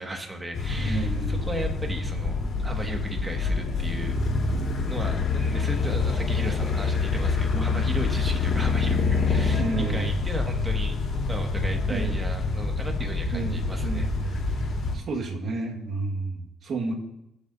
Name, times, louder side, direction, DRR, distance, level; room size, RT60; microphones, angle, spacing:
voice 1, 0.0-4.1 4.8-9.6 9.9-11.0 11.3-14.4, right 1 dB, 20° right, 2 dB, 1.9 m, -36 dB
sound 1, 0.5-14.9, left 4 dB, 65° left, 3.5 m, -26 dB
voice 2, 0.8-1.4 7.5-7.9 9.6-10.1 11.9-12.3 13.3-14.6 14.9-16.9, right 3 dB, 60° right, 1 dB, 1.8 m, -31 dB
20.5 x 7.1 x 2.7 m, 0.86 s
cardioid pair, 90°, 0 cm